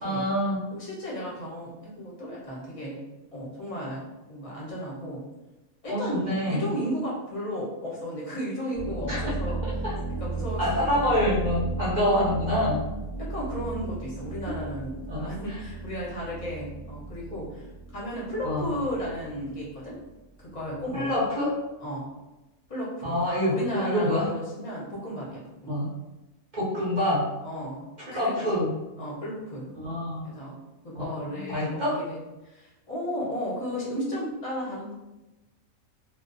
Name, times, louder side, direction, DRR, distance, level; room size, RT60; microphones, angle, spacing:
voice 1, 0.0-0.6 5.9-6.6 9.1-9.2 9.6-9.9 10.6-12.8 15.1-15.6 18.4-18.7 20.9-21.5 23.0-24.3 25.7-25.9 26.5-27.3 28.1-28.7 29.8-30.3 30.9-32.0, left 1 dB, 50° right, -8 dB, 0.6 m, -26 dB
voice 2, 0.7-3.0 3.3-4.0 4.3-5.2 5.8-9.6 10.2-11.2 13.2-17.7 17.9-20.0 20.4-21.1 21.8-22.0 22.7-23.1 23.5-25.9 27.4-28.5 29.0-29.7 30.2-30.6 30.8-34.9, equal, 35° left, -6 dB, 0.6 m, -34 dB
sound 1, 8.7-21.1, right 3 dB, 5° right, 0.9 m, -35 dB
2.4 x 2.1 x 2.5 m, 1.0 s
omnidirectional pair, 1.5 m